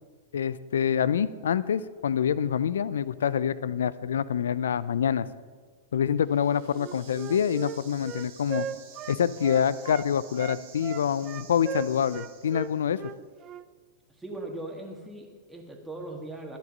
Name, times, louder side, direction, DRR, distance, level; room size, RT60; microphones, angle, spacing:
voice 1, 0.3-5.3 5.9-8.7 9.1-13.0, left 8 dB, 75° left, 17 dB, 0.5 m, -26 dB
sound 1, 6.2-13.0, right 7 dB, 50° right, 2.5 m, -51 dB
Wind instrument woodwind instrument, 6.7-10.1 10.4-13.7, right 8 dB, 30° right, 0.5 m, -38 dB
voice 2, 14.2-16.6, right 2 dB, 5° right, 1 dB, 2.0 m, -39 dB
12.0 x 10.0 x 5.4 m, 1.5 s
hypercardioid pair, 105°, 0 cm